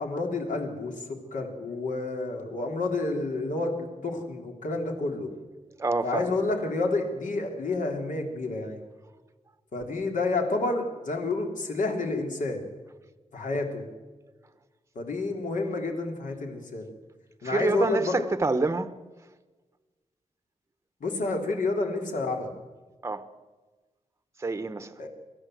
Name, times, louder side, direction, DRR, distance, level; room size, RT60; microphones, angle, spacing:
voice 1, 0.0-5.3 6.0-8.8 9.7-12.6 13.3-13.9 15.0-16.9 17.4-18.2 21.0-22.5 25.0-25.1, left 3 dB, 70° left, 3.5 m, -29 dB
voice 2, 5.8-6.3 17.4-18.9 23.0-23.3 24.4-24.9, right 3 dB, 20° right, 0.9 m, -27 dB
27.5 x 14.0 x 7.9 m
wide cardioid pair, 165°, 14 cm